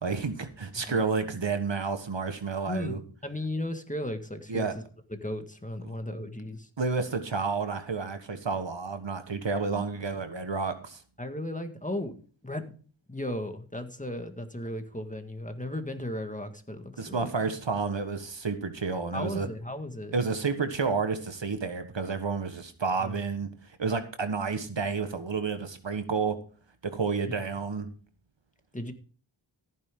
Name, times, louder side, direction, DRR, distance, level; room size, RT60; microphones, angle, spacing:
voice 1, 0.0-3.0 4.5-4.7 5.8-5.9 6.8-11.0 17.0-19.5 20.1-23.5 23.8-26.4 26.8-27.9, right 4 dB, 65° right, 1.5 m, -30 dB
voice 2, 2.7-4.7 5.1-6.7 11.2-12.1 12.4-12.6 13.1-17.3 19.1-20.1 23.0-23.2 28.7-28.9, left 1 dB, 15° left, 1.8 m, -35 dB
15.0 x 9.4 x 3.8 m
wide cardioid pair, 60°, 47 cm